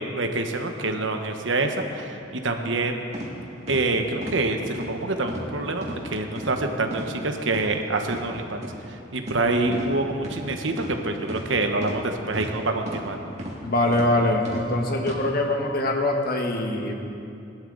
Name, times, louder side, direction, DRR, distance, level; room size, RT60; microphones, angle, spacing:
voice 1, 0.0-3.0 3.7-8.6 9.1-13.2, right 2 dB, 80° right, 4 dB, 1.2 m, -26 dB
sound 1, 3.1-3.3 3.7-3.8 4.2-4.4 4.7-4.9 5.3-5.5 5.8-6.0 6.4-6.5 6.9-7.1 7.5-7.7 8.1-8.2 8.6-8.8 9.2-9.4 9.7-9.9 10.2-10.4 10.8-10.9 11.3-11.5 11.8-12.0 12.3-12.5 12.9-13.1 13.4-13.6 13.9-14.1 14.5-14.6 15.0-15.2, equal, 35° right, 2.2 m, -34 dB
voice 2, 13.6-16.9, left 1 dB, 50° left, 2 dB, 1.4 m, -23 dB
20.0 x 12.0 x 4.0 m, 2.7 s
head